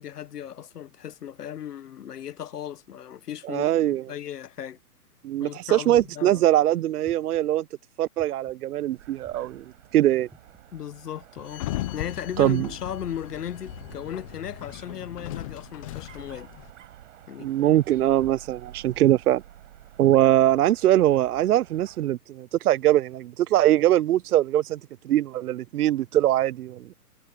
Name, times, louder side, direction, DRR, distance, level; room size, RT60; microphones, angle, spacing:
voice 1, 0.0-3.7 4.1-4.8 5.4-6.4 10.7-11.7 11.9-16.5 17.3-17.8, left 9 dB, 80° left, 1.5 m, -36 dB
voice 2, 3.5-4.0 5.2-7.7 8.0-9.6 9.9-10.3 12.4-12.7 17.4-19.4 20.0-26.9, right 13 dB, 70° right, 0.6 m, -22 dB
sound 1, 5.9-6.4 7.1-7.5 8.2-8.6 9.2-9.6 10.3-10.7 11.4-11.7 12.4-12.7, right 2 dB, ahead, 1.0 m, -53 dB
Dog, 8.9-22.2, right 12 dB, 55° right, 5.0 m, -49 dB
Sliding door, 11.5-16.7, left 16 dB, 20° left, 0.7 m, -37 dB
hypercardioid pair, 155°, 46 cm